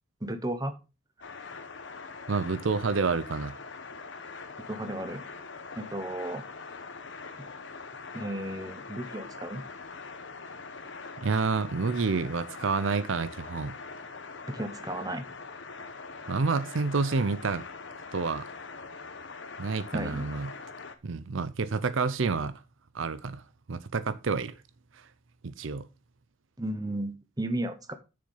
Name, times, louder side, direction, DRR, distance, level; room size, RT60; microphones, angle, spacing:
voice 1, 0.2-0.7 4.7-5.2 5.8-6.4 8.1-9.6 14.5-15.3 19.9-20.3 26.6-27.9, right 1 dB, 20° right, 0.9 m, -34 dB
sound 1, 1.2-21.0, left 4 dB, 65° left, 1.0 m, -43 dB
voice 2, 2.3-3.6 11.2-13.7 16.3-17.6 18.1-18.5 19.6-20.5 21.0-22.6 22.9-23.4 23.7-24.5 25.4-25.8, right 4 dB, 75° right, 0.6 m, -29 dB
6.7 x 6.7 x 5.4 m
head